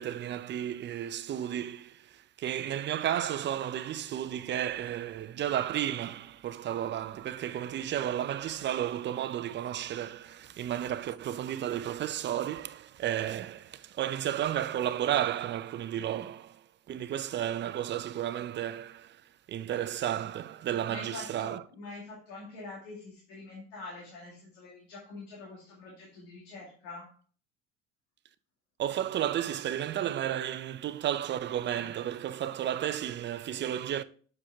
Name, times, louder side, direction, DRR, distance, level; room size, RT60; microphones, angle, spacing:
voice 1, 0.0-19.2 19.5-21.6 28.8-34.0, right 11 dB, 35° right, 0.6 m, -33 dB
voice 2, 20.9-27.2, left 3 dB, 80° left, 2.3 m, -45 dB
7.4 x 5.0 x 3.5 m
supercardioid pair, 90°, 31 cm